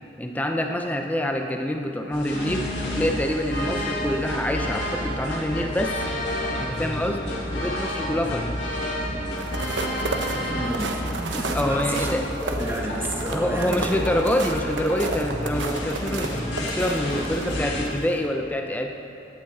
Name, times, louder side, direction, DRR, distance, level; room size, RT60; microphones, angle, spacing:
voice 1, 0.2-6.1 6.6-7.2 7.5-8.5 11.5-12.2 13.3-18.9, equal, 10° left, 3 dB, 0.7 m, -26 dB
sound 1, 2.1-17.8, equal, 80° left, 2.2 m, -30 dB
sound 2, 9.3-17.5 18.0-18.2, right 3 dB, 90° right, 0.9 m, -32 dB
voice 2, 10.3-12.1 12.4-13.9, right 1 dB, 15° right, -1 dB, 1.4 m, -31 dB
16.0 x 8.9 x 4.2 m, 2.7 s
head